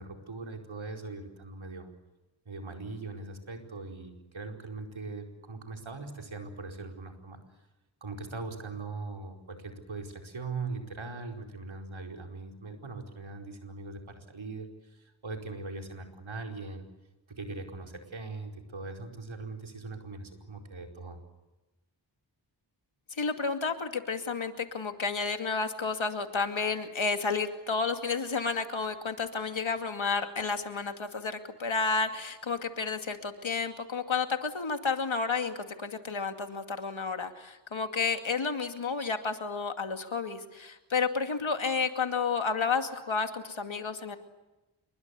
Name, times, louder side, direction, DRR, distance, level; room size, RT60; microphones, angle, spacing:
voice 1, 0.0-1.9 2.4-7.4 8.0-16.9 17.3-21.2, right 3 dB, 80° right, 3 dB, 4.8 m, -40 dB
voice 2, 23.1-44.2, left 5 dB, 85° left, 6 dB, 2.5 m, -31 dB
27.0 x 23.5 x 8.4 m, 1.1 s
cardioid pair, 45°, 46 cm